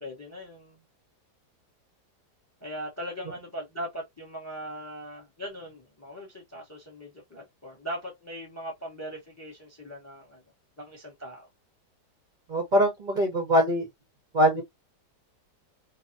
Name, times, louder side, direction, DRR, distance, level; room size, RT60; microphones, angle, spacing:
voice 1, 0.0-0.8 2.6-10.4 10.8-11.5, equal, 20° left, 0.5 m, -40 dB
voice 2, 12.5-13.9 14.3-14.6, equal, 65° right, 0.4 m, -22 dB
2.9 x 2.0 x 2.5 m
omnidirectional pair, 1.8 m